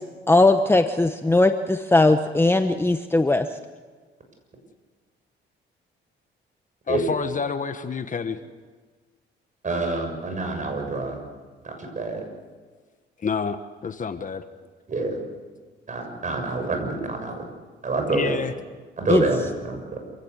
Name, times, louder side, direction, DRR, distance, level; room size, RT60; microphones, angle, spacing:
voice 1, 0.3-3.5 19.1-19.2, left 2 dB, 10° left, 8 dB, 1.0 m, -19 dB
voice 2, 6.9-8.4 13.2-14.4 18.1-18.5, left 5 dB, 40° left, 9 dB, 1.4 m, -28 dB
voice 3, 9.6-11.2 11.6-12.2 14.9-15.2 15.9-17.5 17.8-18.4 19.0-20.0, right 3 dB, 40° right, 4 dB, 6.7 m, -27 dB
27.0 x 16.5 x 8.2 m, 1.4 s
cardioid pair, 90°, 20 cm